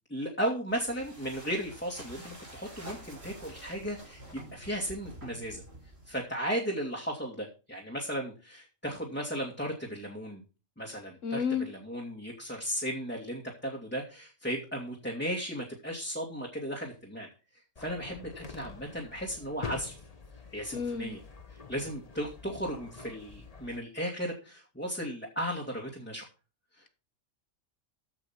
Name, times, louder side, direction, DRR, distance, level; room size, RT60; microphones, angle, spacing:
voice 1, 0.1-4.2 4.5-5.6 6.1-10.4 10.8-17.3 17.8-19.9 20.5-21.2 21.5-26.2 26.8-26.9, equal, 10° left, -1 dB, 2.5 m, -35 dB
sound 1, 0.7-6.2, right 1 dB, 50° right, 5.3 m, -48 dB
voice 2, 11.2-11.7 20.7-21.2, left 6 dB, 75° left, 11 dB, 1.6 m, -31 dB
sound 2, 17.8-23.8, left 4 dB, 30° left, 1.2 m, -46 dB
14.5 x 5.9 x 5.9 m, 0.33 s
omnidirectional pair, 1.3 m